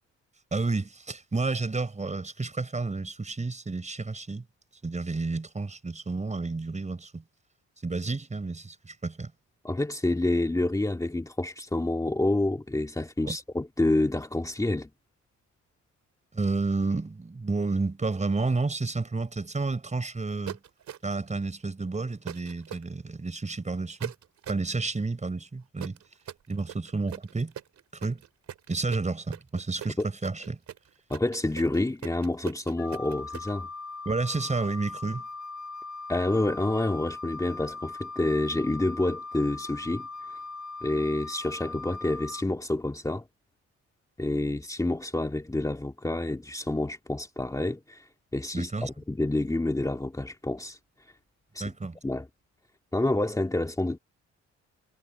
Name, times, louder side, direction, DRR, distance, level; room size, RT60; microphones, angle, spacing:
voice 1, 0.5-4.4 4.8-7.2 7.8-9.3 13.2-13.4 16.3-20.6 21.0-24.1 24.5-26.0 26.5-27.5 27.9-28.2 28.7-30.6 34.0-35.2 48.5-48.9 51.6-52.0, right 3 dB, 25° right, 4.9 m, -30 dB
voice 2, 9.6-14.9 30.0-30.1 31.1-33.7 36.1-40.4 40.8-43.3 44.2-48.1 48.3-50.8 51.5-51.7 52.0-52.3 52.9-54.0, left 2 dB, 10° left, 2.4 m, -28 dB
sound 1, 20.5-21.3 22.3-22.8 24.0-24.7 25.8-33.5, right 10 dB, 65° right, 3.6 m, -41 dB
Wind instrument woodwind instrument, 32.8-42.4, left 3 dB, 65° left, 1.6 m, -40 dB
cardioid pair, 90°, 30 cm